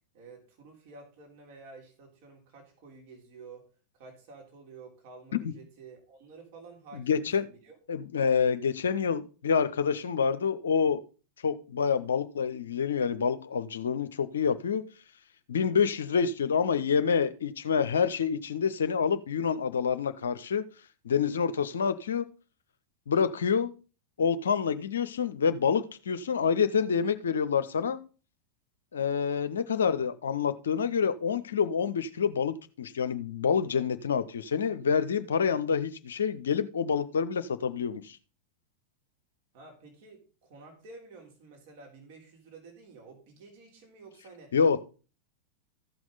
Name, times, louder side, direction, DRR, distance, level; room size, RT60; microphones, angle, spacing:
voice 1, 0.1-3.6 3.9-7.8 39.5-44.5, right 4 dB, 50° right, 0 dB, 3.5 m, -51 dB
voice 2, 6.9-7.4 7.9-11.0 11.4-14.8 15.5-20.6 21.0-22.3 23.1-23.7 24.2-28.0 28.9-38.2 44.5-44.8, left 6 dB, 65° left, 11 dB, 0.6 m, -27 dB
14.5 x 6.0 x 3.9 m, 0.35 s
figure-of-eight pair, 90°, 0 cm